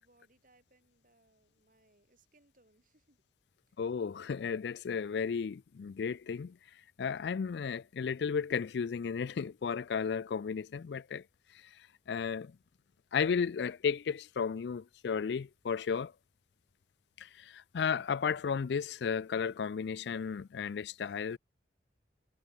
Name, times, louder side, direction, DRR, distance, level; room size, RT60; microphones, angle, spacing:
voice 1, 0.0-3.2 3.6-3.8, right 2 dB, 45° right, 7.4 m, -68 dB
voice 2, 3.8-6.6 7.0-11.2 11.5-12.6 13.1-16.1 17.2-21.4, left 6 dB, 70° left, 0.4 m, -34 dB
head